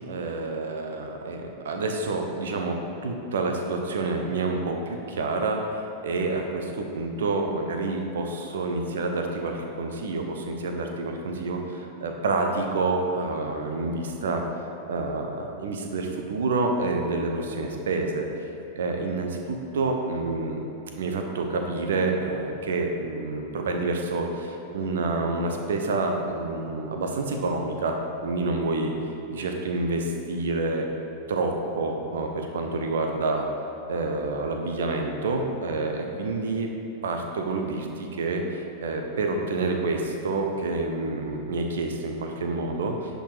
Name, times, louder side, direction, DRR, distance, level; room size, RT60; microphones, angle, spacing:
voice 1, 0.1-14.4 14.9-18.5 18.7-20.7 20.9-28.9 29.3-30.9 31.3-33.5 33.9-36.7 37.0-43.2, right 3 dB, 60° right, 3 dB, 1.1 m, -28 dB
10.5 x 5.4 x 5.0 m, 3.0 s
figure-of-eight pair, 90°, 0 cm